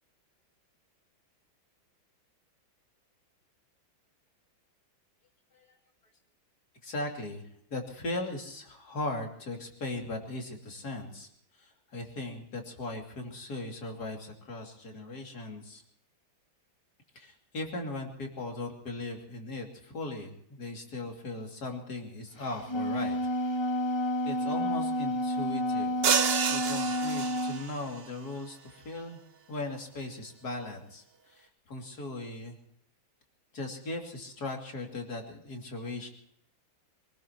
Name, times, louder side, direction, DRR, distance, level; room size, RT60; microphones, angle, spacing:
voice 1, 6.8-11.3 11.5-15.8 17.1-23.2 24.2-26.0 26.5-29.2 29.5-32.6 33.5-36.1, left 2 dB, 50° left, 2 dB, 3.3 m, -38 dB
Wind instrument woodwind instrument, 22.5-27.6, equal, 20° left, 0.8 m, -30 dB
sound 1, 26.0-27.8, right 7 dB, 60° right, 0.6 m, -28 dB
25.0 x 19.0 x 3.0 m, 0.70 s
omnidirectional pair, 2.2 m